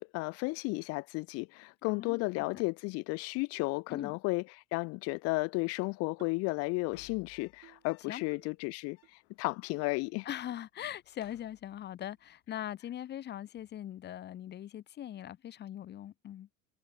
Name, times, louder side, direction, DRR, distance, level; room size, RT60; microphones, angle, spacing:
voice 1, 0.0-10.3, left 26 dB, 55° left, 0.6 m, -34 dB
voice 2, 1.8-2.2 3.9-4.2 8.1-8.2 10.3-16.5, left 11 dB, 35° left, 3.7 m, -41 dB
sound 1, 6.2-6.5 6.9-7.2 7.6-7.9 8.3-8.6 9.0-9.1 9.8-9.9 10.5-10.6 11.3-11.4 12.0-12.2, right 19 dB, 55° right, 4.0 m, -60 dB
sound 2, 6.7-8.3 8.6-8.7 8.9-9.9 10.2-10.6 10.9-12.3 13.6-13.9, left 37 dB, 75° left, 7.0 m, -62 dB
cardioid pair, 155°, 29 cm